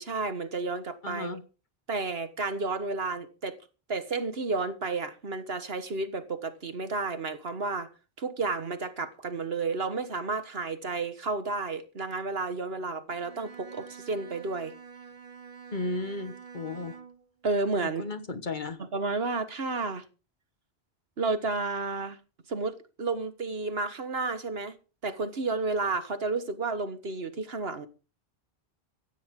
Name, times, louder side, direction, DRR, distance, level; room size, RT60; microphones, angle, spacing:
voice 1, 0.0-1.3 1.9-3.6 3.9-7.9 8.2-14.7 17.4-18.0 18.9-20.0 21.2-22.2 22.5-24.8 25.0-27.9, right 3 dB, 65° right, 1.7 m, -31 dB
voice 2, 1.0-1.4 15.7-17.0 17.8-18.8, left 2 dB, 45° left, 1.5 m, -34 dB
Bowed string instrument, 13.1-17.3, right 6 dB, 40° right, 0.9 m, -47 dB
16.0 x 15.0 x 3.8 m
omnidirectional pair, 1.1 m